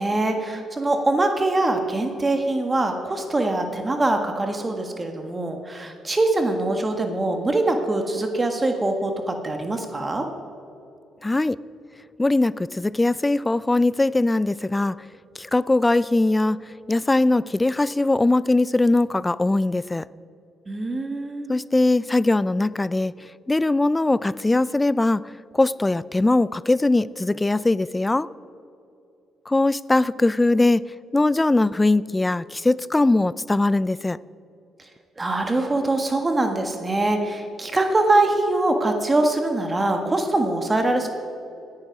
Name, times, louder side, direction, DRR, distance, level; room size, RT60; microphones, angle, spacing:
voice 1, 0.0-10.3 20.7-21.5 35.2-41.1, right 2 dB, 25° right, 5 dB, 1.5 m, -23 dB
voice 2, 11.2-11.6 12.2-15.0 15.4-16.6 16.9-20.1 21.5-23.1 23.5-25.2 25.5-28.3 29.5-30.8 31.1-34.2, left 2 dB, 15° left, 20 dB, 0.3 m, -20 dB
17.5 x 9.7 x 6.0 m, 2.7 s
cardioid pair, 90°, 0 cm